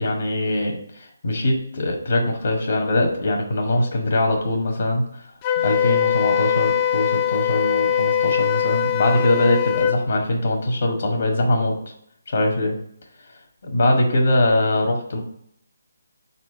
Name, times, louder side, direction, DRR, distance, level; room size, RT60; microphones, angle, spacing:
voice 1, 0.0-5.0 5.6-11.8 12.3-12.7 13.6-15.2, left 1 dB, 55° left, 1 dB, 1.4 m, -22 dB
Wind instrument woodwind instrument, 5.4-10.0, left 9 dB, 20° left, 0.4 m, -21 dB
4.4 x 4.3 x 5.3 m, 0.70 s
hypercardioid pair, 165°, 0 cm